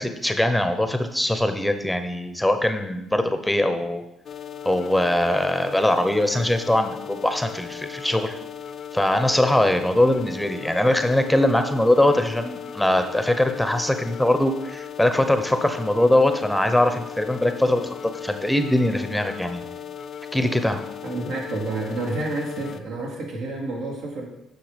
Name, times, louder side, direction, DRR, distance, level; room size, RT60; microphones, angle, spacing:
voice 1, 0.0-4.0 4.6-8.4 8.9-19.6 20.3-20.8, left 1 dB, 5° left, 8 dB, 0.8 m, -22 dB
sound 1, 4.3-22.8, left 8 dB, 55° left, 0.5 m, -37 dB
voice 2, 21.0-24.3, right 2 dB, 80° right, -2 dB, 2.8 m, -29 dB
9.2 x 6.0 x 5.1 m, 0.88 s
cardioid pair, 95°, 0 cm